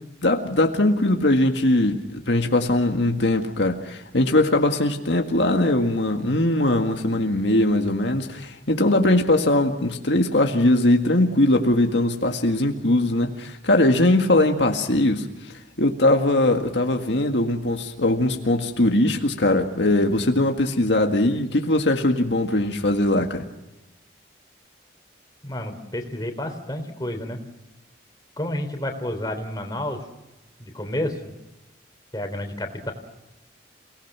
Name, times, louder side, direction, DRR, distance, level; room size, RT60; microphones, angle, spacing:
voice 1, 0.2-15.3 15.8-23.5, left 1 dB, 75° left, 4 dB, 1.9 m, -20 dB
voice 2, 25.4-27.4 28.4-30.0 30.6-31.3 32.1-32.9, left 1 dB, 20° left, 4 dB, 3.4 m, -30 dB
29.5 x 19.0 x 6.1 m, 1.0 s
head